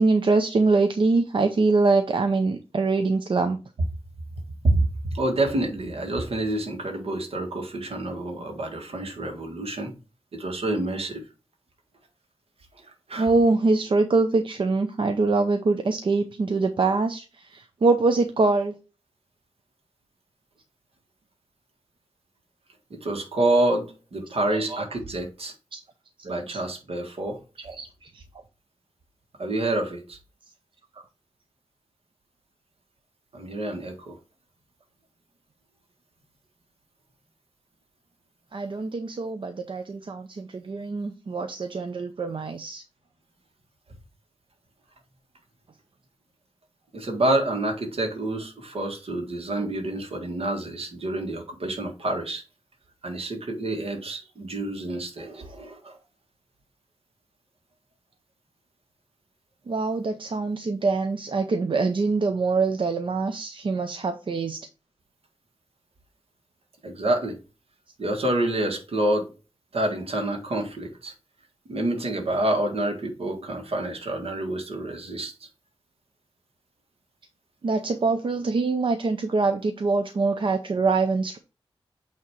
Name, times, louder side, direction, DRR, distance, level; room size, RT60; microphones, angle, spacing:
voice 1, 0.0-3.6 13.2-18.7 24.5-24.8 25.7-25.8 26.5-26.6 27.6-28.2 38.5-42.8 49.6-49.7 59.7-64.6 77.6-81.4, right 3 dB, 55° right, 0.6 m, -24 dB
voice 2, 5.1-9.9 10.3-11.2 13.1-13.3 22.9-25.5 26.2-27.4 29.4-30.2 33.3-34.2 46.9-52.4 53.0-56.0 66.8-67.4 68.0-69.3 69.7-71.1 71.7-75.5, right 1 dB, 75° right, 1.7 m, -27 dB
8.5 x 2.9 x 4.7 m
wide cardioid pair, 135°, 10 cm